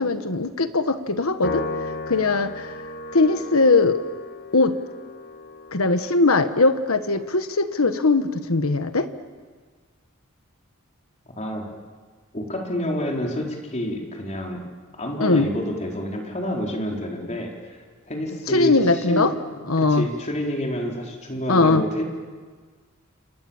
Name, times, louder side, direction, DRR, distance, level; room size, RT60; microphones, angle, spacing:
voice 1, 0.0-1.6 2.1-2.7 3.1-4.0 4.5-4.8 5.7-9.1 15.2-15.5 18.5-19.3 19.7-20.1 21.5-21.8, left 3 dB, 80° left, 9 dB, 1.4 m, -20 dB
Piano, 1.4-8.0, left 2 dB, 50° left, 1.4 m, -36 dB
voice 2, 11.4-11.7 12.3-14.6 14.9-22.0, equal, 35° left, 0 dB, 4.4 m, -29 dB
29.0 x 28.0 x 7.3 m, 1.5 s
head